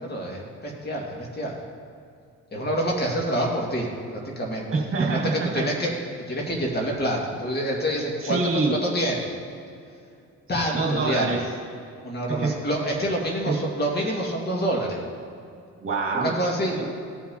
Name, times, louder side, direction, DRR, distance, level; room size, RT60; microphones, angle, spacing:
voice 1, 0.0-1.6 2.5-4.7 5.0-5.9 6.3-9.3 10.5-11.4 12.0-15.0 16.1-16.8, equal, 35° left, -2 dB, 2.0 m, -27 dB
voice 2, 4.7-5.6 8.2-8.8 10.7-11.4 12.3-12.5 13.5-13.6 15.8-16.3 16.7-16.8, right 3 dB, 45° right, -2 dB, 2.1 m, -25 dB
16.5 x 5.7 x 2.9 m, 2.5 s
cardioid pair, 90°, 30 cm